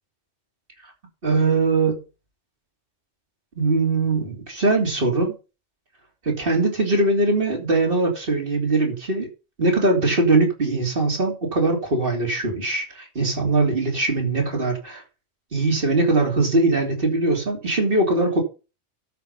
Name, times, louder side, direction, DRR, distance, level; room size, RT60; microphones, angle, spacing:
voice 1, 1.2-1.9 3.6-5.3 6.2-9.3 9.6-15.0 15.5-18.4, right 2 dB, 50° right, 3.2 m, -21 dB
12.5 x 5.2 x 5.4 m
omnidirectional pair, 1.2 m